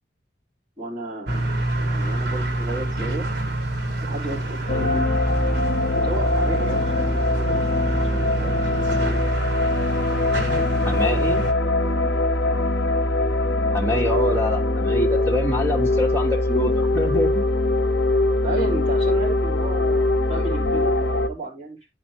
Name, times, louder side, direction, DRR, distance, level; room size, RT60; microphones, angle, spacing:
voice 1, 0.8-3.3 4.0-5.3 6.0-9.2 10.3-11.2 11.6-12.2 12.4-12.7 18.4-21.8, right 2 dB, 25° right, 3.7 m, -34 dB
sound 1, 1.3-11.5, right 1 dB, 65° right, 1.4 m, -28 dB
sound 2, 4.7-21.3, left 2 dB, 65° left, 0.8 m, -22 dB
voice 2, 10.8-11.5 13.7-17.4, left 1 dB, 15° left, 1.2 m, -25 dB
11.0 x 4.4 x 2.9 m
head